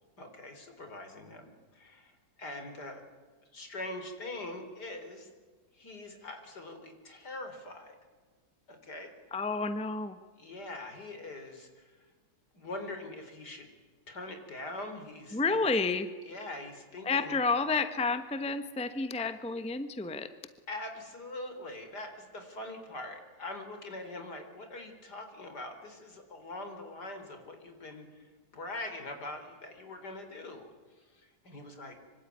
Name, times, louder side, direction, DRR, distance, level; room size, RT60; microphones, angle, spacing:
voice 1, 0.2-3.0 3.5-5.3 5.7-8.0 8.7-9.5 10.4-12.0 12.5-13.7 14.1-15.7 16.2-17.4 19.2-19.3 20.7-32.0, left 2 dB, 65° left, 6 dB, 4.6 m, -43 dB
voice 2, 9.3-10.2 15.3-16.1 17.0-20.3, left 4 dB, 5° left, 10 dB, 1.0 m, -30 dB
25.5 x 24.5 x 9.6 m, 1.5 s
omnidirectional pair, 1.9 m